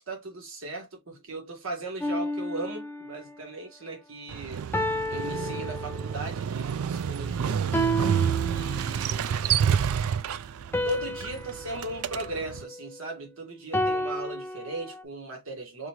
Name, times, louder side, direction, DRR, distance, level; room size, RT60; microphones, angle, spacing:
voice 1, 0.0-4.7 5.1-7.6 8.5-9.6 10.8-15.9, right 3 dB, 70° right, 1.7 m, -37 dB
sound 1, 2.0-3.3 4.7-6.4 7.7-9.2 10.7-13.1 13.7-15.0, equal, 10° left, 0.4 m, -31 dB
Motorcycle, 4.3-12.6, right 7 dB, 90° right, 0.4 m, -29 dB
3.8 x 2.9 x 3.0 m
head